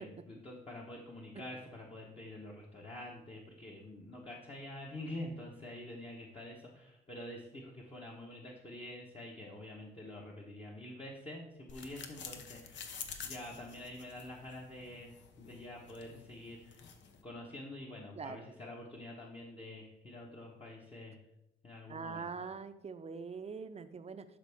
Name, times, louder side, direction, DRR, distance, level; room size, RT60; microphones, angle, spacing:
voice 1, 0.0-16.8 17.2-21.2 21.6-22.3, left 1 dB, 30° left, -2 dB, 1.2 m, -47 dB
sound 1, 11.7-17.2, left 6 dB, 65° left, 1.0 m, -49 dB
voice 2, 18.1-18.5 21.9-24.3, right 5 dB, 30° right, 10 dB, 0.6 m, -43 dB
11.5 x 4.3 x 3.6 m, 0.86 s
cardioid pair, 90°, 20 cm